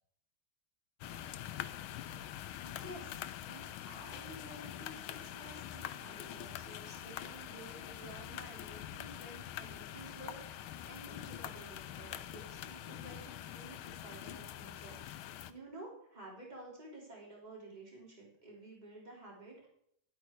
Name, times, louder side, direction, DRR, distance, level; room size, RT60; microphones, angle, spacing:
sound 1, 1.0-15.5, left 11 dB, 85° left, 1.5 m, -45 dB
voice 1, 2.6-19.7, right 2 dB, 20° right, -3 dB, 3.4 m, -52 dB
11.0 x 8.4 x 4.8 m, 0.68 s
omnidirectional pair, 2.3 m